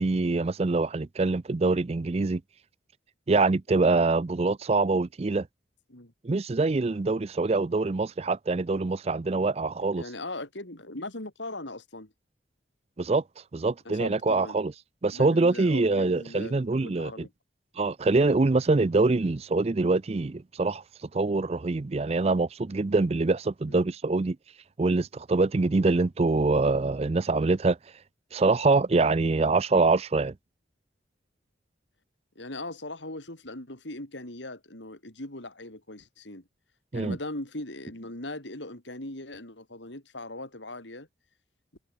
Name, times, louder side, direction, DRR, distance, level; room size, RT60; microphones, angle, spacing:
voice 1, 0.0-2.4 3.3-5.5 6.2-10.0 13.0-13.2 13.5-14.7 15.0-17.1 17.8-20.8 21.1-24.4 24.8-27.8 28.3-30.3 36.9-37.2, right 3 dB, 35° right, 0.4 m, -24 dB
voice 2, 10.0-12.1 13.8-14.6 15.1-17.3 23.7-23.9 32.3-36.4 36.9-41.1, left 2 dB, 80° left, 4.9 m, -39 dB
head